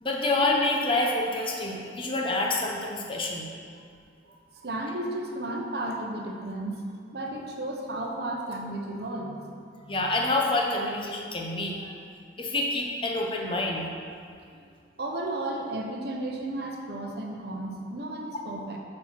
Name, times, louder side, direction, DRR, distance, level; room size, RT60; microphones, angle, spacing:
voice 1, 0.0-3.5 9.9-12.0 12.4-13.9, left 2 dB, 25° left, -1 dB, 0.9 m, -27 dB
voice 2, 4.3-6.8 7.1-10.0 14.5-14.6 15.0-18.8, right 1 dB, 55° right, 1 dB, 0.9 m, -34 dB
8.1 x 4.4 x 6.0 m, 2.3 s
head